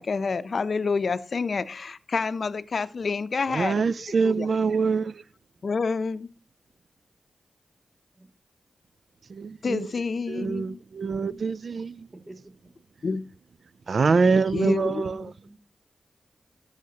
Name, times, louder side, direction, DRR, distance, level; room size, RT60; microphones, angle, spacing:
voice 1, 0.0-3.8 4.2-4.5 5.6-6.3 9.6-10.8 11.3-11.4 13.0-13.2 14.5-15.3, left 4 dB, 60° left, 0.6 m, -28 dB
voice 2, 3.5-5.2 9.3-9.9 10.3-12.1 13.9-15.3, right 4 dB, 65° right, 0.4 m, -25 dB
voice 3, 11.2-11.5 12.2-12.5 15.1-15.5, right 2 dB, 25° right, 3.0 m, -48 dB
12.0 x 6.5 x 2.9 m
cardioid pair, 55°, 0 cm